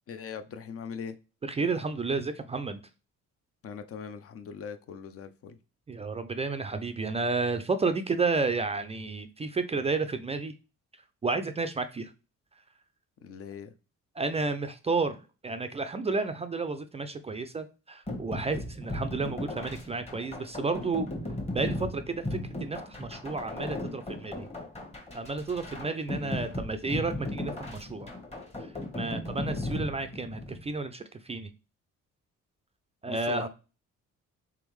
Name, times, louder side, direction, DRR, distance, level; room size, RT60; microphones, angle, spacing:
voice 1, 0.1-1.2 3.6-5.6 13.2-13.7 26.2-26.5 33.0-33.5, left 6 dB, 50° left, 9 dB, 0.5 m, -40 dB
voice 2, 1.4-2.8 5.9-10.5 11.2-12.1 14.2-21.1 21.5-24.5 25.1-28.1 28.9-31.5 33.0-33.5, right 3 dB, 20° right, 9 dB, 0.3 m, -31 dB
sound 1, 18.1-30.6, left 1 dB, 20° left, 1.2 m, -36 dB
3.5 x 3.4 x 3.1 m, 0.32 s
cardioid pair, 90°, 30 cm